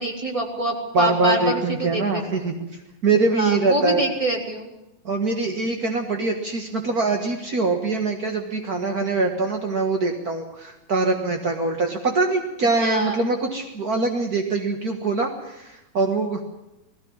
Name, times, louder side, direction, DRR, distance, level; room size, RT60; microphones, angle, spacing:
voice 1, 0.0-2.0 2.4-2.5 3.3-4.7 12.8-13.2, right 1 dB, 10° right, 1 dB, 3.3 m, -25 dB
voice 2, 0.9-2.7 3.0-4.0 5.0-16.4, right 3 dB, 50° right, 4 dB, 1.0 m, -23 dB
19.5 x 16.0 x 8.8 m, 0.92 s
omnidirectional pair, 4.2 m